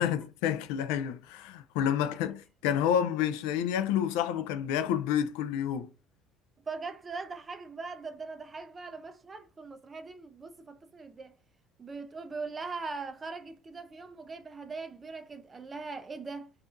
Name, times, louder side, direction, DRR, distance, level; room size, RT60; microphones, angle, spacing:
voice 1, 0.0-5.9, left 9 dB, 90° left, 0.3 m, -29 dB
voice 2, 6.7-11.3 11.8-16.5, right 4 dB, 25° right, 0.5 m, -41 dB
2.6 x 2.4 x 2.4 m
cardioid pair, 110°, 0 cm